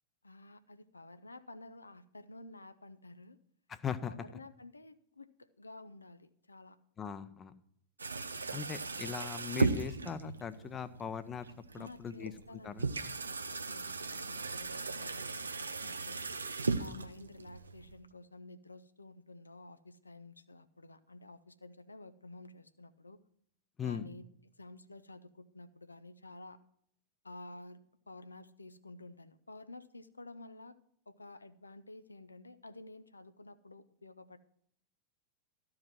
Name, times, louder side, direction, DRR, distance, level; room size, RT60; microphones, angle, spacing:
voice 1, 0.2-3.4 4.0-6.8 11.8-12.9 13.2-16.2 16.8-23.2 23.8-24.2 24.6-26.6 27.2-27.8 28.1-30.8 31.1-34.4, left 2 dB, 80° left, 12 dB, 0.6 m, -52 dB
voice 2, 3.7-4.1 7.0-7.5 8.5-11.5 11.7-12.3 12.6-12.9 23.8-24.1, left 7 dB, 25° left, 13 dB, 0.7 m, -39 dB
sound 1, 8.0-18.0, right 3 dB, 75° right, 0.6 m, -37 dB
13.0 x 4.9 x 7.5 m, 0.68 s
figure-of-eight pair, 90°, 0 cm